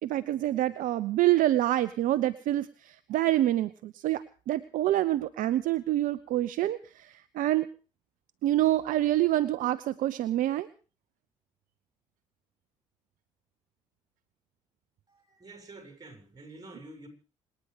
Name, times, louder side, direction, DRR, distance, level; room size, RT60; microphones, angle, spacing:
voice 1, 0.0-7.7 8.4-10.7, right 14 dB, 60° right, 16 dB, 0.7 m, -27 dB
voice 2, 15.3-17.1, right 2 dB, 25° right, 6 dB, 6.7 m, -48 dB
26.5 x 9.7 x 5.1 m, 0.37 s
hypercardioid pair, 50°, 16 cm